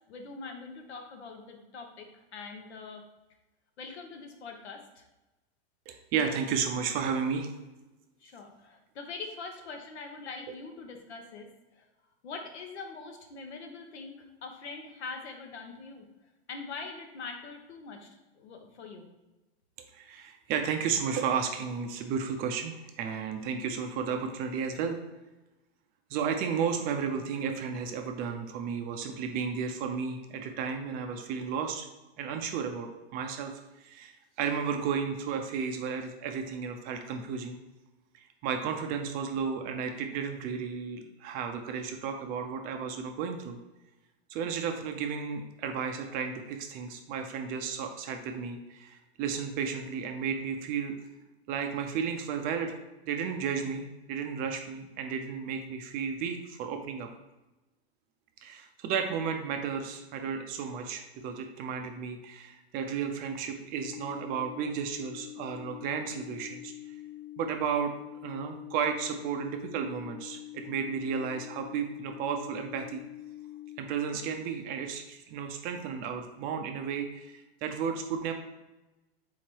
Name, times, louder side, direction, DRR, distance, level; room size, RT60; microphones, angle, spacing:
voice 1, 0.1-3.0 3.8-5.0 8.2-11.5 11.8-11.9 12.2-16.0 16.5-18.1 18.4-19.0, left 4 dB, 85° left, 4 dB, 1.0 m, -43 dB
voice 2, 5.9-7.5 19.9-25.0 26.1-31.9 32.2-33.5 33.8-37.6 38.1-43.6 44.3-50.9 51.5-52.8 53.1-57.1 58.4-66.7 67.4-67.9 68.2-73.0 73.8-78.3, right 6 dB, 30° right, 5 dB, 0.4 m, -33 dB
sound 1, 63.8-73.8, left 14 dB, 45° left, 0.7 m, -45 dB
3.9 x 3.0 x 4.5 m, 1.1 s
supercardioid pair, 140°, 32 cm